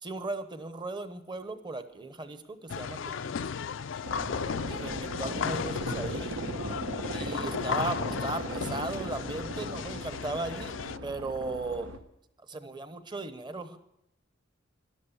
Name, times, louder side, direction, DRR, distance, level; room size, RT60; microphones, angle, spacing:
voice 1, 0.0-3.5 4.7-6.4 7.1-10.7 11.0-11.9 12.4-13.8, right 2 dB, 25° right, 10 dB, 0.9 m, -37 dB
sound 1, 2.7-11.0, left 6 dB, 65° left, 0.4 m, -35 dB
sound 2, 4.0-12.0, equal, 90° right, 1.3 m, -37 dB
13.0 x 11.5 x 7.0 m, 0.80 s
head